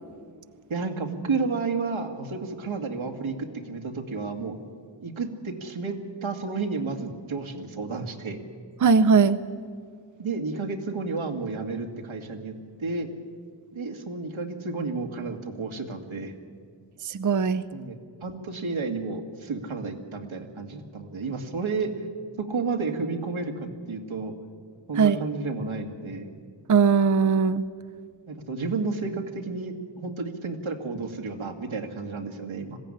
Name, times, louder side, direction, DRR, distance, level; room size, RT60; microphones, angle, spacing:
voice 1, 0.7-4.5 5.0-8.4 10.2-12.5 12.8-13.1 13.7-16.4 17.7-22.1 22.4-24.3 24.9-26.3 28.3-32.8, right 4 dB, 85° right, 3 dB, 2.2 m, -31 dB
voice 2, 8.8-9.4 17.0-17.6 25.0-25.2 26.7-27.6, right 5 dB, 40° right, 11 dB, 0.6 m, -19 dB
21.0 x 15.5 x 9.9 m, 2.1 s
wide cardioid pair, 90°, 47 cm